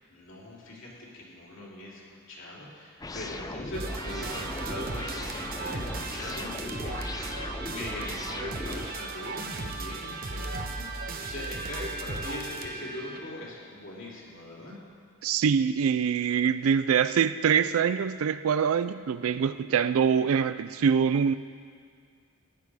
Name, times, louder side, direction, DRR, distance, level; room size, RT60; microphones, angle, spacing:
voice 1, 0.1-7.0 7.3-14.8, left 1 dB, 60° left, -5 dB, 3.1 m, -41 dB
sound 1, 3.0-8.9, left 2 dB, 15° left, 0.4 m, -38 dB
sound 2, 3.7-13.2, right 3 dB, 40° right, 0.9 m, -36 dB
voice 2, 15.2-21.3, right 7 dB, 75° right, 13 dB, 0.4 m, -24 dB
15.0 x 10.5 x 4.9 m, 2.2 s
head